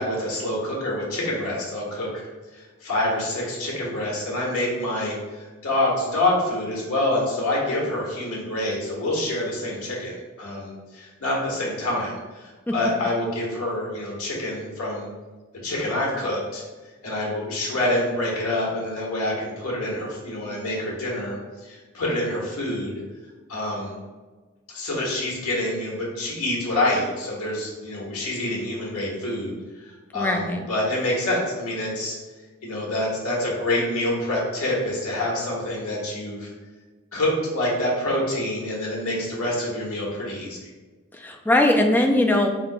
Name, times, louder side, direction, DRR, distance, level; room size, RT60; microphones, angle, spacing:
voice 1, 0.0-2.3 2.5-15.1 15.6-16.6 17.0-23.0 23.5-23.9 24.7-29.5 29.8-32.2 32.6-36.5 37.1-40.6, left 1 dB, 85° left, -3 dB, 1.5 m, -27 dB
voice 2, 30.1-30.6 41.1-42.5, left 1 dB, 10° left, 2 dB, 0.4 m, -20 dB
3.6 x 2.8 x 4.6 m, 1.3 s
head